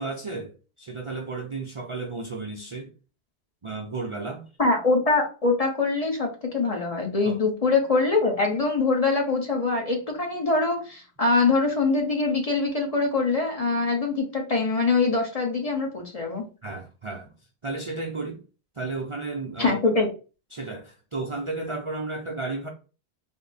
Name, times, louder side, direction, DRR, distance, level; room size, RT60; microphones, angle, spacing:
voice 1, 0.0-2.9 3.6-4.5 7.2-7.4 16.6-17.3 17.6-18.4 18.8-19.8 20.5-22.7, right 3 dB, 40° right, 0.5 m, -33 dB
voice 2, 4.6-16.4 19.6-20.1, left 3 dB, 40° left, 0.8 m, -23 dB
3.6 x 2.0 x 4.0 m
omnidirectional pair, 1.1 m